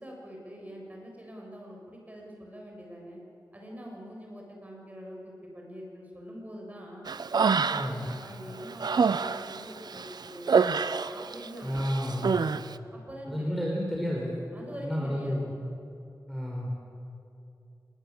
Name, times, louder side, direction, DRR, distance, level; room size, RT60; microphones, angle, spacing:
voice 1, 0.0-3.2 3.5-7.1 7.4-10.7 11.1-12.4 12.9-13.6 14.5-15.5, equal, 20° right, -1 dB, 7.3 m, -44 dB
Human voice, 7.1-8.1 8.5-11.5 11.7-12.6, right 5 dB, 75° right, 0.8 m, -27 dB
voice 2, 7.7-8.1 11.6-12.4 13.3-14.4 14.8-15.5 16.3-16.7, equal, ahead, -3 dB, 5.0 m, -31 dB
27.0 x 21.5 x 8.8 m, 2.6 s
wide cardioid pair, 95°, 7 cm